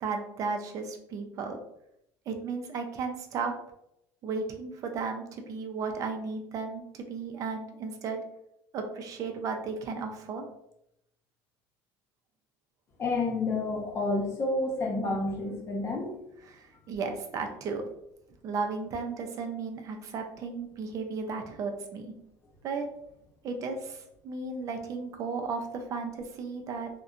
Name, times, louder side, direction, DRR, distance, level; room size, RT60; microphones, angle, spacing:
voice 1, 0.0-1.6 2.3-3.5 4.2-8.2 8.7-10.4 16.5-17.8 18.4-22.1 22.6-22.8 23.4-26.9, right 4 dB, 50° right, 5 dB, 0.5 m, -34 dB
voice 2, 13.0-16.2, left 2 dB, 35° left, 0 dB, 0.7 m, -29 dB
2.6 x 2.1 x 2.4 m, 0.79 s
cardioid pair, 115°, 7 cm